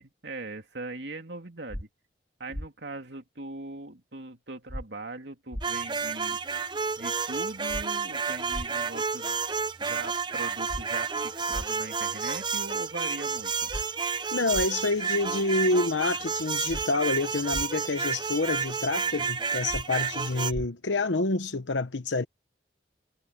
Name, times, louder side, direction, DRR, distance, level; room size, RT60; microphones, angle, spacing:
voice 1, 0.0-1.9 2.4-6.4 7.0-9.4 9.8-13.7, right 2 dB, 75° right, 2.8 m, -40 dB
sound 1, 1.7-1.8 2.5-2.7 4.7-4.8 5.5-5.7 7.7-7.8 8.5-8.7 10.7-10.8 11.5-11.7 13.7-13.8 14.5-14.7 16.7-16.8 17.5-17.7 19.7-19.8 20.5-20.7, equal, 35° left, 3.6 m, -35 dB
sound 2, 5.6-20.5, right 5 dB, 25° right, 0.8 m, -31 dB
voice 2, 14.3-22.2, left 2 dB, 90° left, 1.0 m, -28 dB
head